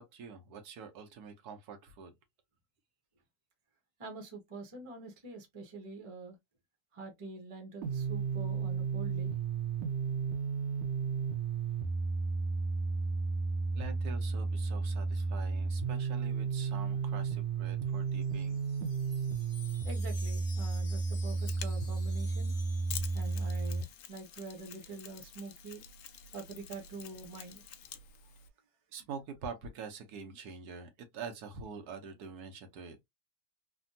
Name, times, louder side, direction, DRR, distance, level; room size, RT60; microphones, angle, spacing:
voice 1, 0.0-2.1 13.7-18.6 28.9-33.0, right 5 dB, 90° right, 1.3 m, -45 dB
voice 2, 4.0-6.4 6.9-9.3 19.8-22.5 23.1-25.8 26.3-27.7, right 3 dB, 30° right, 0.7 m, -46 dB
sound 1, 7.8-23.8, right 4 dB, 70° right, 1.0 m, -33 dB
Wind chime, 17.9-24.2, left 5 dB, 50° left, 1.3 m, -54 dB
Mechanisms, 21.3-28.5, left 7 dB, 70° left, 0.9 m, -48 dB
3.3 x 2.2 x 2.6 m
omnidirectional pair, 1.6 m